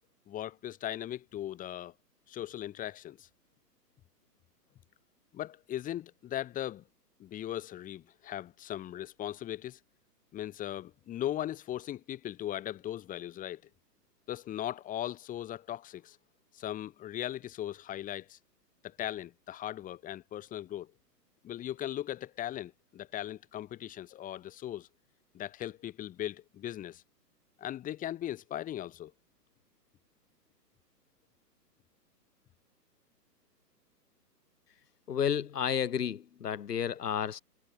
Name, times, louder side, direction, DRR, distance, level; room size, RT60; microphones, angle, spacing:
voice 1, 0.3-1.9 2.3-3.3 5.3-6.8 7.2-9.8 10.3-13.6 14.3-16.2 16.5-18.4 18.8-20.9 21.4-24.9 25.3-27.0 27.6-29.1, left 12 dB, 15° left, 3.0 m, -38 dB
voice 2, 35.1-37.4, left 8 dB, 70° left, 1.7 m, -31 dB
hypercardioid pair, 140°, 49 cm